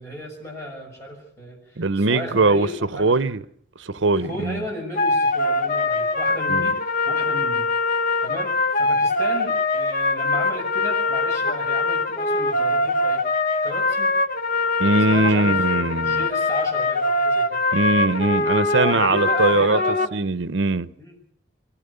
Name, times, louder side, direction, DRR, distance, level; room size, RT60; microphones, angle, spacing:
voice 1, 0.0-3.3 4.1-7.7 8.2-13.3 13.6-14.2 15.1-17.6 18.7-20.1 20.9-21.2, equal, 15° left, 6.6 m, -34 dB
voice 2, 1.8-3.4 3.8-4.6 6.5-6.7 14.8-16.3 17.7-19.8 20.1-20.9, right 3 dB, 75° right, 0.8 m, -21 dB
sound 1, 4.9-20.1, left 2 dB, 45° left, 0.8 m, -22 dB
23.5 x 16.5 x 6.9 m
head